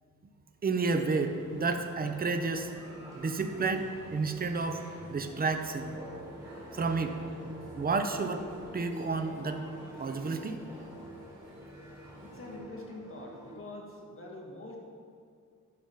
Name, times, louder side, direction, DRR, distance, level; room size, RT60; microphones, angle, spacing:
voice 1, 0.6-2.7 3.1-4.8 5.1-5.9 6.7-7.2 7.8-8.4 8.7-9.6 10.0-10.6, right 4 dB, 30° right, 6 dB, 0.6 m, -31 dB
sound 1, 0.8-12.6, equal, 60° right, 2.8 m, -52 dB
sound 2, 1.6-13.6, right 1 dB, 10° right, 1.7 m, -47 dB
voice 2, 12.2-14.8, left 2 dB, 45° left, -1 dB, 1.6 m, -45 dB
10.5 x 5.8 x 5.6 m, 2.2 s
wide cardioid pair, 170°, 31 cm